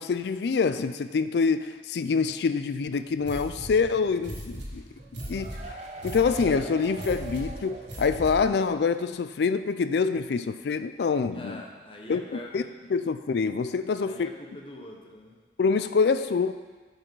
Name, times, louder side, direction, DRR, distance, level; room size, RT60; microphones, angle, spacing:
voice 1, 0.0-4.8 5.3-11.6 12.1-12.6 12.9-14.3 15.6-16.5, left 5 dB, 65° left, 11 dB, 0.4 m, -26 dB
sound 1, 3.2-8.6, equal, 85° right, 1.8 m, -39 dB
sound 2, 5.0-8.6 8.9-9.0 9.3-9.4, right 2 dB, 40° right, 0.7 m, -42 dB
voice 2, 11.3-12.7 13.9-15.4, left 1 dB, 30° left, 0 dB, 1.0 m, -43 dB
9.7 x 5.4 x 4.7 m, 1.4 s
head